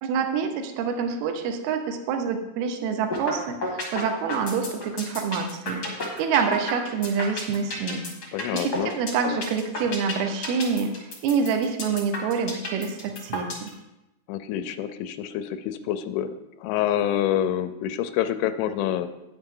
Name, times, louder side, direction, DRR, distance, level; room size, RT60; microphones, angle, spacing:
voice 1, 0.0-13.7, right 6 dB, 80° right, 6 dB, 2.3 m, -27 dB
sound 1, 3.1-3.3 3.6-13.7, left 2 dB, 55° left, 1.1 m, -31 dB
voice 2, 8.3-8.9 14.3-16.3 16.6-19.1, left 11 dB, 85° left, 10 dB, 2.9 m, -27 dB
9.6 x 8.0 x 3.8 m, 0.94 s
omnidirectional pair, 5.5 m